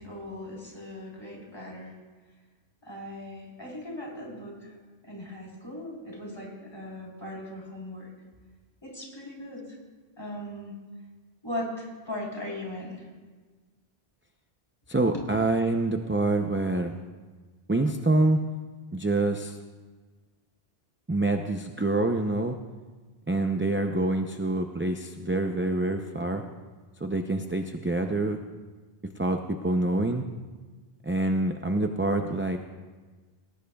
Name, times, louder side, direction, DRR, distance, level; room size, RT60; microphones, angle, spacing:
voice 1, 0.0-1.9 2.8-4.7 5.0-8.1 8.8-9.8 10.2-10.7 11.4-13.1 15.1-15.2, left 1 dB, 25° left, -3 dB, 3.9 m, -38 dB
voice 2, 14.9-16.9 17.7-18.4 18.9-19.5 21.1-22.6 23.3-26.4 27.0-28.4 29.2-30.3 31.0-32.6, right 2 dB, 15° right, 4 dB, 0.4 m, -26 dB
19.0 x 18.0 x 2.3 m, 1.4 s
omnidirectional pair, 1.0 m